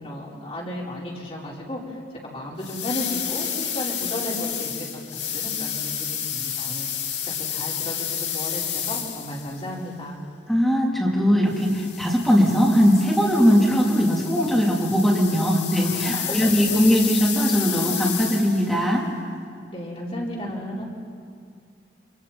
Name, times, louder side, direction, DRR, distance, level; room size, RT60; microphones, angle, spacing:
voice 1, 0.0-1.8 2.2-4.9 5.3-6.9 7.3-10.2 15.8-16.5 19.7-20.8, left 1 dB, 35° left, -4 dB, 5.1 m, -33 dB
sound 1, 2.6-9.6 11.5-18.8, left 8 dB, 85° left, 2.4 m, -30 dB
voice 2, 10.5-19.1, equal, ahead, -4 dB, 3.6 m, -20 dB
29.5 x 27.0 x 4.5 m, 2.2 s
head